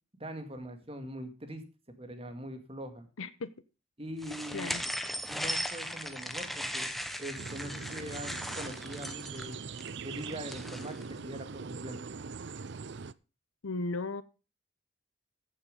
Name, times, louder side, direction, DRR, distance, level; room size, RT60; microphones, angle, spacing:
voice 1, 0.2-1.6 2.0-3.1 4.0-4.7 5.3-6.9 7.2-9.7 10.0-10.9 11.2-12.0, equal, 30° right, 6 dB, 2.1 m, -42 dB
voice 2, 3.2-3.5 4.5-4.8 13.6-14.2, left 3 dB, 85° left, 13 dB, 0.8 m, -35 dB
sound 1, 4.2-11.0, equal, ahead, 0.9 m, -38 dB
sound 2, 7.4-13.1, right 5 dB, 60° right, 0.5 m, -42 dB
15.0 x 7.4 x 5.3 m, 0.33 s
head